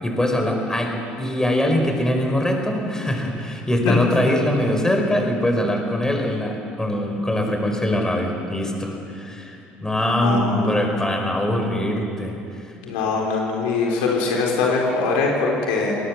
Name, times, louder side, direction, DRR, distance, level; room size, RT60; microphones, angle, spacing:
voice 1, 0.0-12.6, left 1 dB, 10° left, 2 dB, 4.7 m, -22 dB
voice 2, 10.2-10.8 12.8-16.0, left 4 dB, 80° left, -1 dB, 4.0 m, -22 dB
21.0 x 19.5 x 7.2 m, 2.8 s
hypercardioid pair, 65°, 5 cm